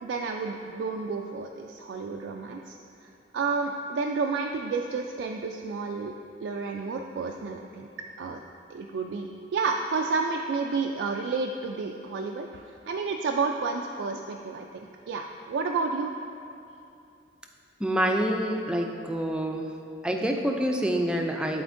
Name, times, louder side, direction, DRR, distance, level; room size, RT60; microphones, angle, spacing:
voice 1, 0.0-6.1 6.4-7.9 8.2-8.4 8.7-14.8 15.1-16.1, right 4 dB, 80° right, 2 dB, 0.3 m, -31 dB
voice 2, 17.8-19.7 20.0-21.6, equal, 5° right, 2 dB, 0.3 m, -27 dB
11.5 x 4.2 x 2.5 m, 2.6 s
head